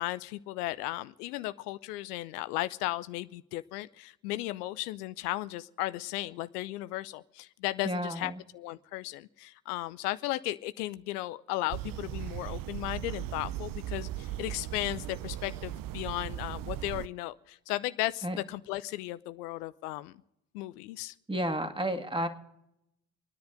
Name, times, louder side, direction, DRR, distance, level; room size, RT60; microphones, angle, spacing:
voice 1, 0.0-20.2 20.5-21.1, left 17 dB, 75° left, 15 dB, 0.6 m, -35 dB
voice 2, 7.8-8.4 18.2-18.4 21.3-22.3, right 1 dB, 10° right, 6 dB, 2.2 m, -31 dB
sound 1, 11.7-17.1, right 13 dB, 45° right, 0.6 m, -38 dB
27.5 x 10.5 x 5.0 m, 0.82 s
hypercardioid pair, 50°, 47 cm